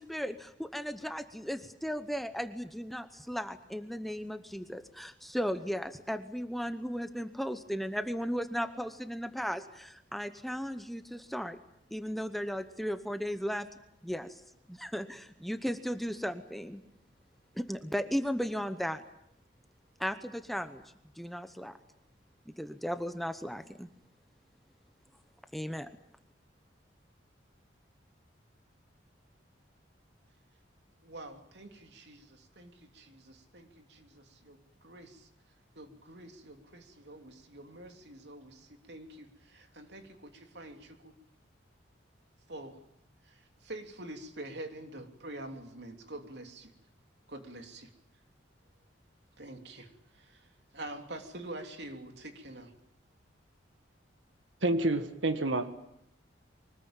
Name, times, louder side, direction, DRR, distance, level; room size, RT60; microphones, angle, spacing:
voice 1, 0.0-11.6 11.9-13.7 14.0-14.4 14.7-16.8 17.5-19.0 20.0-20.8 21.2-21.8 22.6-23.9 25.5-25.9, equal, ahead, 9 dB, 0.9 m, -36 dB
voice 2, 31.0-35.3 35.7-41.1 42.5-42.8 43.2-46.7 47.3-47.9 49.4-52.7, right 1 dB, 60° right, 5 dB, 3.2 m, -46 dB
voice 3, 54.6-55.8, right 2 dB, 80° right, 8 dB, 1.7 m, -29 dB
24.5 x 19.5 x 9.0 m, 0.79 s
head